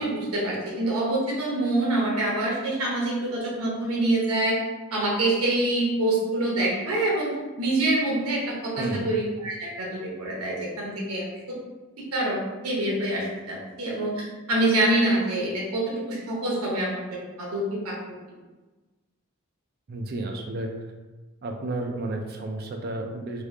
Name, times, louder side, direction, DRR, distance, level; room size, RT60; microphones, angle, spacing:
voice 1, 0.0-4.6 4.9-11.3 12.1-18.0, right 1 dB, 80° right, -3 dB, 1.0 m, -26 dB
voice 2, 8.8-9.1 19.9-20.7 21.4-23.4, right 2 dB, 45° right, 2 dB, 0.4 m, -31 dB
3.3 x 2.3 x 3.3 m, 1.2 s
head